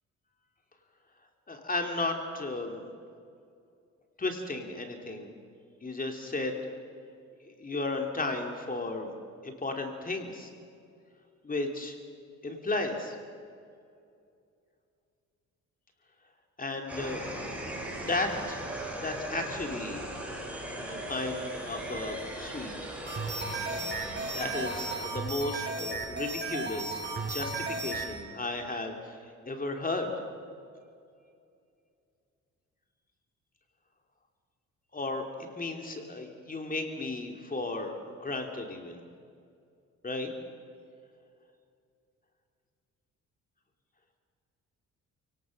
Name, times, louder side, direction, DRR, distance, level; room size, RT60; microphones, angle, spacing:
voice 1, 1.5-2.9 4.2-5.3 5.8-6.6 7.4-9.1 9.4-10.5 11.4-12.0 12.4-13.2 16.6-17.2 18.1-18.6 19.0-20.0 20.3-20.4 20.8-22.9 24.0-24.1 24.3-30.1 34.9-35.3 35.5-39.0 40.0-40.3, left 2 dB, 30° left, 3 dB, 3.0 m, -34 dB
sound 1, 16.9-25.0, right 1 dB, 5° right, 7.1 m, -39 dB
sound 2, 23.1-28.1, right 2 dB, 35° right, 5.5 m, -34 dB
28.5 x 18.0 x 6.6 m, 2.4 s
cardioid pair, 90°, 30 cm